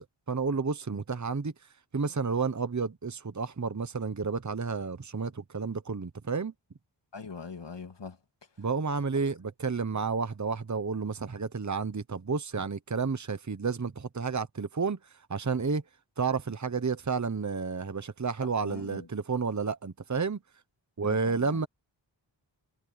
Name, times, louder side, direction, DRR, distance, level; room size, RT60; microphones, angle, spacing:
voice 1, 0.0-1.5 1.9-6.5 8.6-15.0 15.3-15.8 16.2-20.4 21.0-21.7, right 5 dB, 40° right, 1.1 m, -31 dB
voice 2, 7.1-8.2 18.6-19.1 21.0-21.6, left 5 dB, 70° left, 2.5 m, -42 dB
wide cardioid pair, 50°, 45 cm